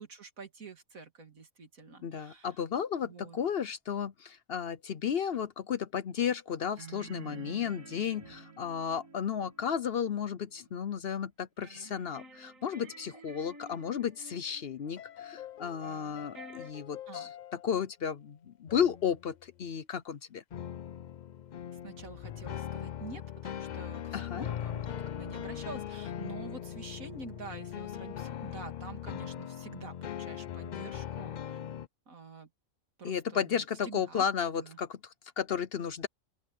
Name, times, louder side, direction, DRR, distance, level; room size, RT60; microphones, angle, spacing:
voice 1, 0.0-2.5 3.0-3.4 16.7-17.3 21.8-31.6 32.1-32.5 33.0-34.3 34.5-34.8, right 4 dB, 90° right, 3.0 m, -47 dB
voice 2, 2.0-20.4 24.1-24.5 33.0-36.1, left 8 dB, 55° left, 0.8 m, -33 dB
sound 1, 6.8-10.9 11.6-16.7, right 3 dB, 70° right, 2.4 m, -51 dB
sound 2, 14.9-17.8 18.7-19.3 20.5-31.9, left 10 dB, 75° left, 0.4 m, -40 dB
open air
omnidirectional pair, 1.4 m